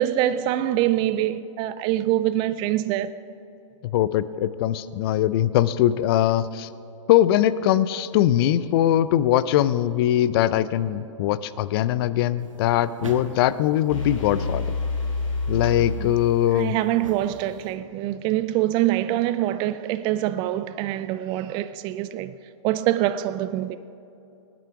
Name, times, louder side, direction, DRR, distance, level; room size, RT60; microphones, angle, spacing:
voice 1, 0.0-3.1 16.0-16.1 16.5-22.3 22.6-23.8, right 13 dB, 30° right, 0.3 m, -24 dB
voice 2, 3.9-6.7 7.1-14.6 15.5-16.7, left 12 dB, 50° left, 0.6 m, -21 dB
sound 1, 12.4-17.7, right 3 dB, 90° right, 1.4 m, -42 dB
sound 2, 13.9-16.8, left 3 dB, 85° left, 3.0 m, -28 dB
19.5 x 9.1 x 4.8 m
hypercardioid pair, 120°, 16 cm